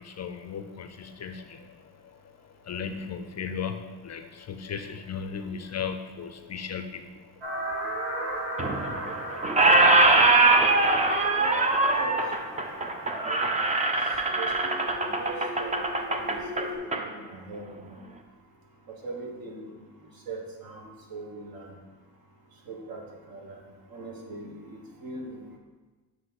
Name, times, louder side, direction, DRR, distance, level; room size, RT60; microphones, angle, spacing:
voice 1, 0.0-2.2 2.6-7.2 7.6-8.7 9.1-10.4 10.7-10.9 11.3-11.4, left 6 dB, 40° left, 7 dB, 0.5 m, -38 dB
sound 1, 7.4-16.8, equal, 90° right, 2.1 m, -36 dB
Squeak, 8.6-9.1 9.4-17.0, right 2 dB, 20° right, 0.5 m, -22 dB
voice 2, 11.4-12.2 13.1-13.9 14.3-18.0 18.9-19.7 20.0-21.8 22.7-23.0 23.3-23.6 23.9-25.6, right 3 dB, 60° right, 0 dB, 1.5 m, -41 dB
7.5 x 3.1 x 5.7 m, 1.3 s
cardioid pair, 120°, 41 cm